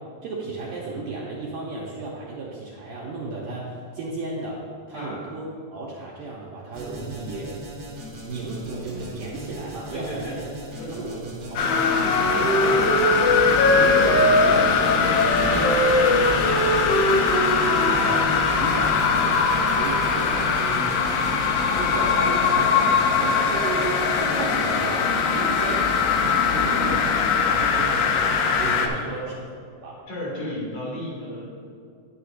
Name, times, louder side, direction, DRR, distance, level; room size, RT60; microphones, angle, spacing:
voice 1, 0.2-7.6 8.2-10.5 10.9-11.2 11.5-12.9 13.7-15.8 16.1-22.9 23.2-29.2 29.8-30.0, right 3 dB, 75° right, -4 dB, 2.0 m, -34 dB
sound 1, 6.7-24.8, right 1 dB, 45° right, 1.5 m, -39 dB
voice 2, 9.9-10.4 10.7-11.0 12.3-12.8 22.3-22.5 26.6-26.8 28.6-29.2 30.1-31.4, left 1 dB, 50° left, -6 dB, 3.2 m, -34 dB
sound 2, 11.6-28.9, left 5 dB, 90° left, 1.9 m, -22 dB
Wind instrument woodwind instrument, 11.6-18.2, left 1 dB, 70° left, 2.7 m, -21 dB
9.6 x 9.6 x 2.5 m, 2.3 s
omnidirectional pair, 4.5 m